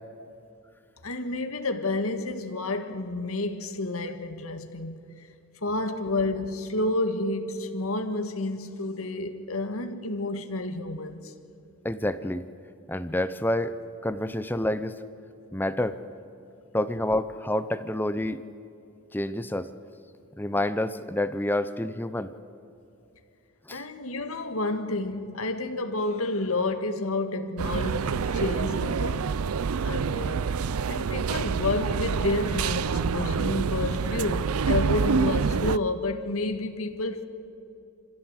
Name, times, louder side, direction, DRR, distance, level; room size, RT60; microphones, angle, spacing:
voice 1, 1.0-5.0 5.6-11.3 23.7-29.3 29.8-30.5 30.9-37.2, left 2 dB, 80° left, 1.7 m, -30 dB
voice 2, 11.8-12.5 12.9-13.7 14.0-15.0 15.5-16.0 16.7-18.4 19.1-19.7 20.4-22.3 23.7-23.8, left 1 dB, 10° left, 0.6 m, -28 dB
sound 1, 27.6-35.8, right 5 dB, 85° right, 0.5 m, -27 dB
26.0 x 15.5 x 8.1 m
head